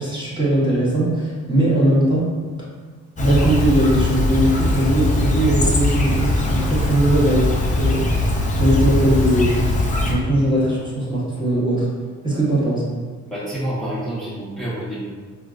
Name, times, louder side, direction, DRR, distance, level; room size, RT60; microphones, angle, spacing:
voice 1, 0.0-2.2 3.2-8.0 8.6-11.9 12.2-12.9, right 1 dB, 15° right, -8 dB, 1.2 m, -20 dB
Chirp tweet, 3.2-10.1, left 2 dB, 25° left, 0.5 m, -20 dB
voice 2, 13.3-15.0, right 1 dB, ahead, -12 dB, 0.9 m, -28 dB
3.7 x 2.4 x 2.4 m, 1.5 s
cardioid pair, 90°, 30 cm